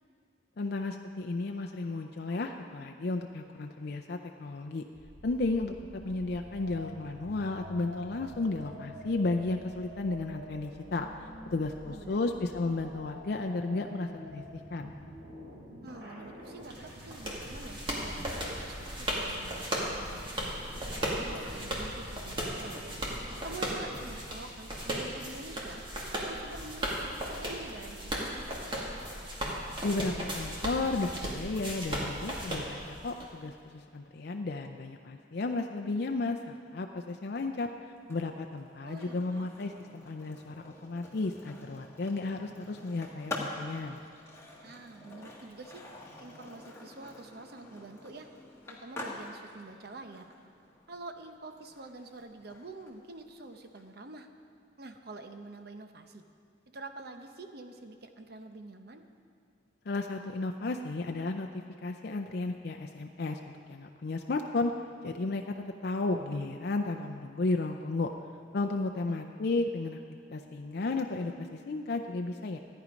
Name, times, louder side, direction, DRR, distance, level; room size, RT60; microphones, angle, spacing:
voice 1, 0.6-4.8 5.2-14.4 14.7-14.9 29.8-37.7 38.1-44.0 59.9-63.4 63.7-64.7 65.0-68.1 68.5-72.6, left 3 dB, 55° left, 4 dB, 0.5 m, -33 dB
sound 1, 4.9-24.2, equal, 90° right, 3.2 m, -48 dB
voice 2, 11.9-12.3 15.8-20.5 20.9-22.8 23.3-25.8 26.2-28.9 38.8-39.5 44.6-45.8 46.2-48.3 48.7-50.3 50.9-54.3 54.8-56.2 56.7-59.0 69.1-69.2, right 2 dB, 55° right, 6 dB, 0.8 m, -47 dB
sound 2, 16.7-33.3, equal, 25° right, 1.8 m, -36 dB
Skateboard, 38.0-53.8, left 2 dB, 15° left, 1.5 m, -46 dB
14.0 x 9.5 x 5.2 m, 2.5 s
head